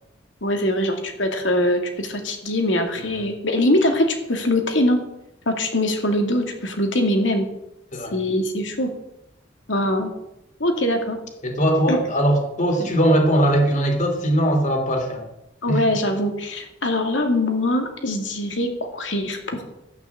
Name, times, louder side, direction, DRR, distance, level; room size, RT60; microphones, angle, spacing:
voice 1, 0.4-5.0 5.5-7.5 8.1-8.9 9.7-10.1 10.6-11.2 11.9-12.0 15.6-19.6, left 1 dB, 80° left, 4 dB, 2.5 m, -22 dB
voice 2, 3.0-3.3 7.9-8.1 11.4-15.2 15.7-15.8, right 1 dB, 40° left, 4 dB, 2.9 m, -20 dB
12.0 x 9.6 x 7.3 m, 0.86 s
head